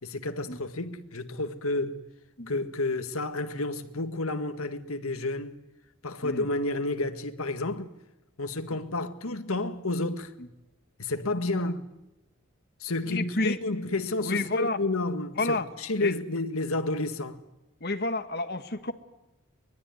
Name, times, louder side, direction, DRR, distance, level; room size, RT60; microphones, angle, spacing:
voice 1, 0.0-2.0 2.5-5.6 6.0-7.9 8.4-10.3 11.0-11.8 12.8-17.4, left 2 dB, 80° left, 1.8 m, -30 dB
voice 2, 13.1-13.6 14.3-14.8 15.4-15.7 16.0-16.1 17.8-18.9, left 2 dB, 50° left, 1.9 m, -30 dB
24.0 x 21.5 x 9.5 m
head